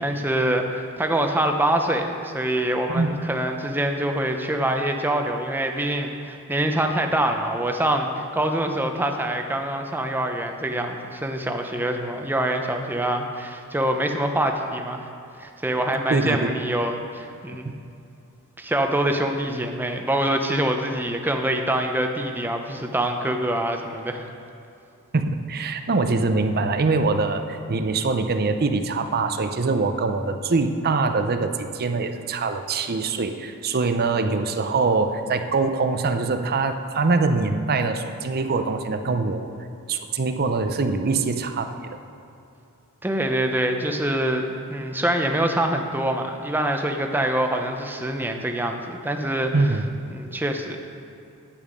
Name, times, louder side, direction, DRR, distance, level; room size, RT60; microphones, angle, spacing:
voice 1, 0.0-15.1 15.4-17.7 18.6-24.3 43.0-49.5 50.1-50.8, right 1 dB, 10° right, 4 dB, 0.7 m, -25 dB
voice 2, 16.1-16.5 25.1-39.5 39.9-42.0 49.5-49.9, right 3 dB, 45° right, 8 dB, 0.6 m, -23 dB
10.0 x 8.7 x 5.3 m, 2.6 s
head